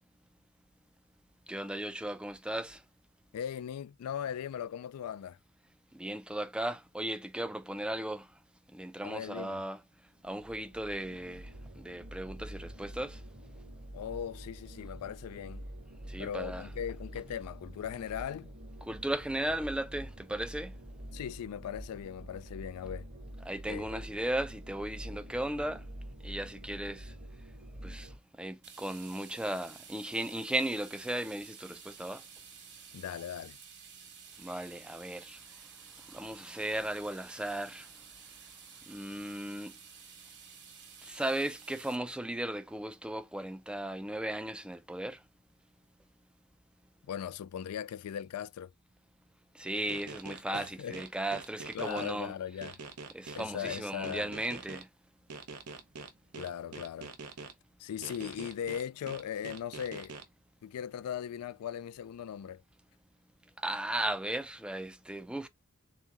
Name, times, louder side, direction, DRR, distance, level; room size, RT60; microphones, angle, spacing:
voice 1, 1.5-2.8 5.9-8.3 8.7-9.8 10.2-13.2 16.1-16.7 18.9-20.7 23.5-25.8 26.2-27.1 27.8-32.2 34.4-35.4 36.1-37.9 38.9-39.7 41.0-45.2 49.5-52.3 53.1-54.9 63.6-65.5, right 1 dB, 5° right, 0.3 m, -36 dB
voice 2, 3.3-5.4 9.0-9.6 13.9-15.6 16.2-18.5 21.1-23.1 23.7-24.0 32.9-33.6 47.0-48.7 50.5-51.0 51.7-52.8 53.3-54.3 56.3-57.1 57.8-60.1 60.6-62.6, left 9 dB, 85° left, 0.3 m, -39 dB
sound 1, 10.1-28.2, right 1 dB, 35° right, 0.9 m, -47 dB
sound 2, 28.6-42.0, right 6 dB, 55° right, 1.4 m, -52 dB
sound 3, 49.9-52.1 52.6-54.8 55.3-57.5 58.0-60.2, right 4 dB, 90° right, 0.8 m, -44 dB
3.6 x 3.0 x 3.4 m
head